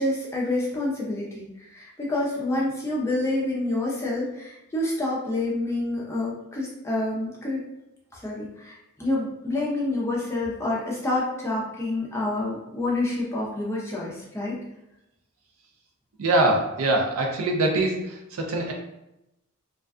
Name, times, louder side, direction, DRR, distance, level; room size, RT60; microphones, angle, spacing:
voice 1, 0.0-7.6 8.1-14.6, left 2 dB, 15° left, -5 dB, 0.5 m, -28 dB
voice 2, 16.2-18.7, right 2 dB, 90° right, 1 dB, 0.5 m, -23 dB
2.4 x 2.2 x 2.3 m, 0.87 s
head